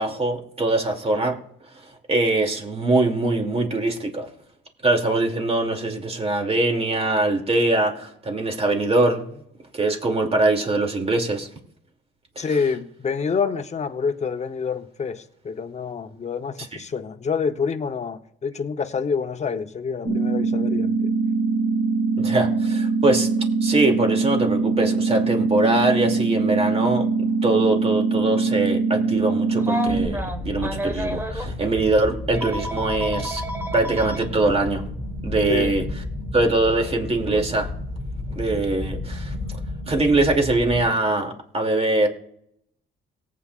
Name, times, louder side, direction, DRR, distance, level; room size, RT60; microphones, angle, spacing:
voice 1, 0.0-1.4 2.1-4.3 4.8-9.4 9.7-11.5 12.4-12.5 22.2-23.3 23.6-27.1 27.4-33.4 33.7-34.8 35.2-35.8 36.3-37.7 38.4-39.4 39.9-42.1, right 2 dB, 30° right, 2.6 m, -22 dB
voice 2, 12.4-21.1 35.5-35.7, left 5 dB, 35° left, 0.9 m, -27 dB
sound 1, 20.1-30.1, right 4 dB, 70° right, 3.3 m, -22 dB
Telephone, 29.6-31.5 32.3-34.2 35.6-35.7 37.3-37.5, equal, 10° right, 1.4 m, -31 dB
sound 2, 29.9-40.9, left 1 dB, 5° left, 3.4 m, -32 dB
18.5 x 8.7 x 2.5 m
cardioid pair, 90°, 20 cm